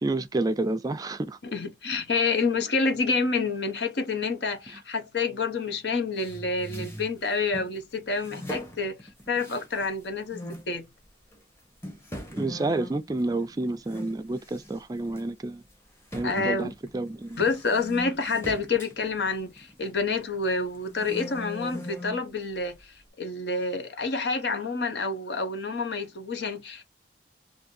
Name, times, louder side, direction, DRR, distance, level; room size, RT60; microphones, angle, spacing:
voice 1, 0.0-1.4 12.3-15.6 16.1-17.4, right 2 dB, 20° right, 0.3 m, -29 dB
voice 2, 1.4-9.0 9.3-10.9 16.2-16.7 17.4-26.8, left 4 dB, 75° left, 0.8 m, -28 dB
sound 1, 6.2-7.7 8.2-10.0 10.3-10.7 11.3-11.4 11.8-14.2 14.4-14.8 15.2-15.3 16.1-20.1 20.6-22.3, left 1 dB, 15° left, 0.9 m, -40 dB
2.6 x 2.6 x 3.7 m
head